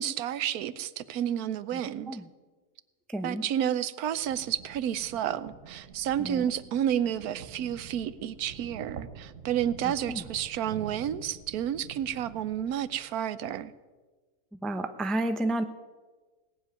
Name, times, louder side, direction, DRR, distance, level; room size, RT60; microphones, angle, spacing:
voice 1, 0.0-2.2 3.2-13.7, right 10 dB, 80° right, 16 dB, 1.1 m, -31 dB
voice 2, 3.1-3.4 6.2-6.4 9.8-10.2 14.6-15.6, right 1 dB, ahead, 8 dB, 0.5 m, -31 dB
sound 1, 4.1-13.3, right 7 dB, 60° right, 1.4 m, -47 dB
18.5 x 7.2 x 9.5 m, 1.3 s
omnidirectional pair, 1.6 m